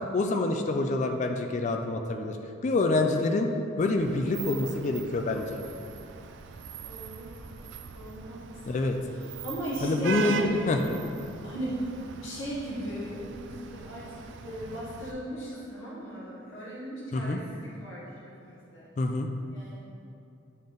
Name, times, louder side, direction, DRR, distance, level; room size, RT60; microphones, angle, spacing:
voice 1, 0.1-2.4 2.6-3.5 3.8-5.6 8.7-9.0 9.8-10.8 17.1-17.4 19.0-19.3, left 2 dB, 35° left, 5 dB, 0.3 m, -26 dB
Vehicle horn car horn honking / Traffic noise roadway noise, 4.0-15.1, right 7 dB, 60° right, 0.3 m, -41 dB
voice 2, 6.8-7.3 7.9-10.7 11.4-11.8 12.2-18.9 19.5-19.8, right 1 dB, 65° left, -8 dB, 1.4 m, -38 dB
8.5 x 3.9 x 3.5 m, 2.6 s
head